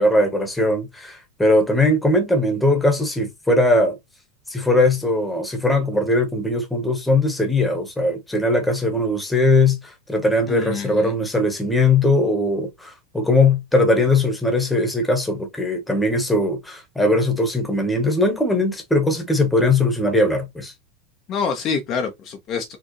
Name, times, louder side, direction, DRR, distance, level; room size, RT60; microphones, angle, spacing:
voice 1, 0.0-4.0 4.5-20.7, left 2 dB, 5° left, 1.1 m, -20 dB
voice 2, 10.5-11.1 21.3-22.8, left 6 dB, 35° left, 0.6 m, -26 dB
4.4 x 2.3 x 3.1 m
supercardioid pair, 145°, 0 cm